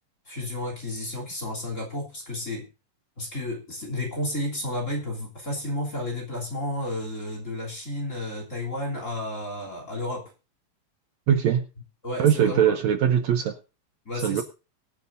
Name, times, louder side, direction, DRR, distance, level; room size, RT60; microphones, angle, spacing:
voice 1, 0.3-2.7 3.2-10.3 12.0-12.8 14.1-14.4, left 1 dB, 25° left, 0 dB, 3.3 m, -32 dB
voice 2, 11.3-11.6 12.2-13.6 14.2-14.4, right 9 dB, 70° right, 7 dB, 2.0 m, -21 dB
23.5 x 8.4 x 2.6 m, 0.32 s
omnidirectional pair, 3.6 m